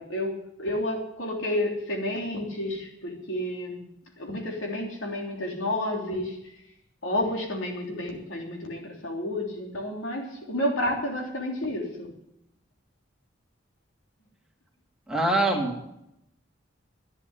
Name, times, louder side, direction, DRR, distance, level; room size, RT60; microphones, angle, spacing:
voice 1, 0.0-3.9 4.2-6.5 7.0-12.1, left 1 dB, 85° left, 1 dB, 3.2 m, -30 dB
voice 2, 15.1-15.8, right 1 dB, 5° right, -1 dB, 2.6 m, -24 dB
11.5 x 9.9 x 9.8 m, 0.83 s
head